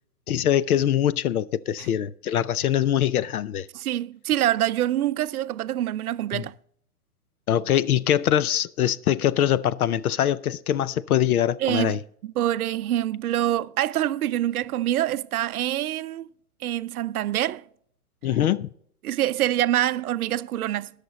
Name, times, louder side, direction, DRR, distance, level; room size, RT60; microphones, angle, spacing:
voice 1, 0.3-3.7 6.3-6.4 7.5-12.0 18.2-18.7, left 10 dB, 70° left, 0.6 m, -23 dB
voice 2, 3.7-6.5 11.6-12.0 12.2-16.3 16.6-17.6 19.0-20.9, right 13 dB, 70° right, 0.5 m, -25 dB
19.5 x 6.7 x 4.1 m
hypercardioid pair, 165°, 46 cm